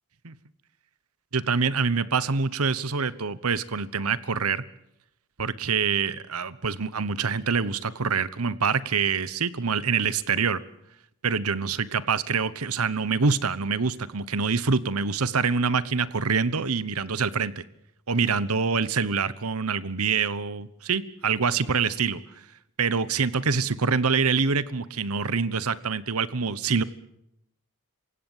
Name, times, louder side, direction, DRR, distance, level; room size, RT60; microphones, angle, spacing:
voice 1, 1.3-4.6 5.4-10.6 11.2-17.6 18.1-22.2 22.8-26.8, right 5 dB, 75° right, 17 dB, 1.1 m, -25 dB
27.0 x 16.5 x 7.4 m, 0.79 s
head